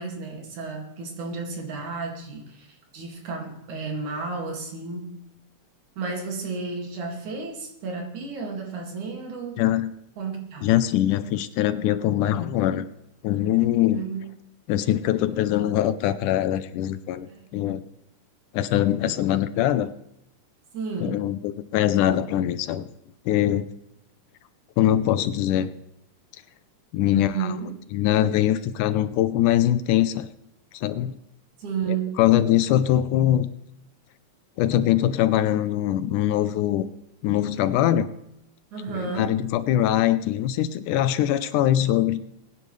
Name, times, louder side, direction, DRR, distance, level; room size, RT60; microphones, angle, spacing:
voice 1, 0.0-5.2 6.0-9.6 10.2-10.7 13.9-14.2 17.3-17.4 19.0-19.1 20.7-21.3 27.1-27.7 31.6-32.2 38.7-39.4, right 5 dB, 70° right, 2 dB, 3.7 m, -32 dB
voice 2, 9.6-9.9 10.6-12.9 13.2-14.0 14.7-17.8 18.5-19.9 21.0-22.9 23.3-23.7 24.8-25.7 26.9-27.5 27.9-30.3 30.7-31.1 31.9-33.5 34.6-36.9 37.2-38.1 38.9-42.2, left 12 dB, 80° left, 13 dB, 2.1 m, -22 dB
22.0 x 10.0 x 3.3 m, 0.81 s
omnidirectional pair, 3.6 m